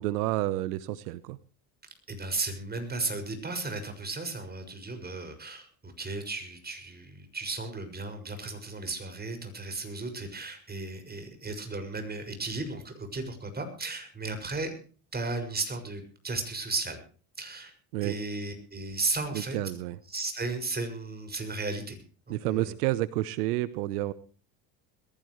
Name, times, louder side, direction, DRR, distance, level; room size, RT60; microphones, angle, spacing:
voice 1, 0.0-1.4 17.9-18.2 19.3-20.0 22.3-24.1, right 16 dB, 90° right, 16 dB, 1.0 m, -30 dB
voice 2, 2.1-14.7 15.1-17.0 17.4-17.7 18.0-19.6 20.1-22.0 22.3-22.7, right 3 dB, 20° right, 7 dB, 6.4 m, -35 dB
21.5 x 15.5 x 3.2 m, 0.40 s
supercardioid pair, 90°, 44 cm